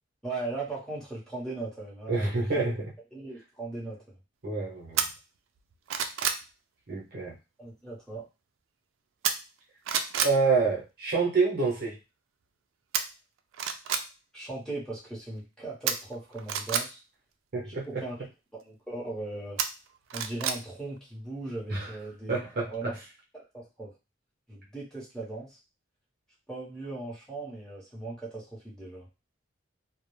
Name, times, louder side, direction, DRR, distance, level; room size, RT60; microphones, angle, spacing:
voice 1, 0.2-2.7 3.1-4.0 7.6-8.2 14.3-17.0 17.6-18.2 18.5-19.6 20.1-22.3 22.6-22.9 23.3-23.9 24.5-25.6 26.5-29.1, right 2 dB, 5° left, -7 dB, 0.8 m, -38 dB
voice 2, 2.1-2.8 4.4-5.0 6.9-7.3 10.2-12.0 17.5-18.0 21.7-21.9 22.3-23.0, right 4 dB, 50° right, -2 dB, 0.7 m, -27 dB
sound 1, 5.0-5.1 5.6-6.4 9.2-9.6 9.9-10.4 12.9-13.0 13.5-14.0 15.9-16.8 19.6-20.6 21.0-21.1, right 8 dB, 80° right, 0.3 m, -28 dB
2.3 x 2.0 x 3.0 m, 0.28 s
head